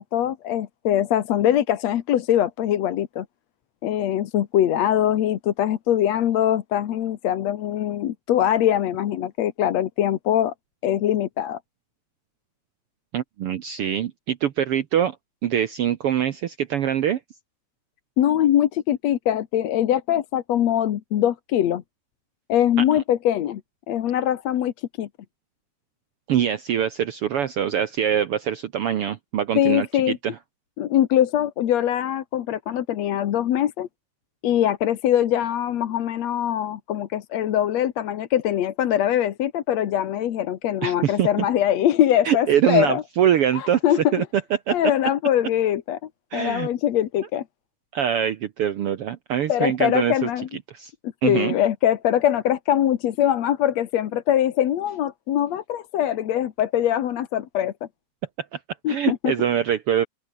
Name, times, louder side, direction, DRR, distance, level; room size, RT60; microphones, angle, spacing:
voice 1, 0.0-3.3 3.8-10.5 10.8-11.6 18.2-21.8 22.5-23.6 23.9-25.1 29.6-30.2 30.8-33.9 34.4-43.0 43.5-44.3 44.7-46.0 46.3-47.4 49.5-50.5 51.2-57.7 58.8-59.3, left 11 dB, 65° left, 2.3 m, -22 dB
voice 2, 13.1-15.2 15.4-17.2 26.3-30.4 40.8-41.3 42.2-44.2 44.7-44.8 46.3-46.7 47.9-50.3 50.7-50.9 51.2-51.5 58.5-58.6 58.9-60.1, right 9 dB, 60° right, 1.6 m, -23 dB
open air
omnidirectional pair, 3.5 m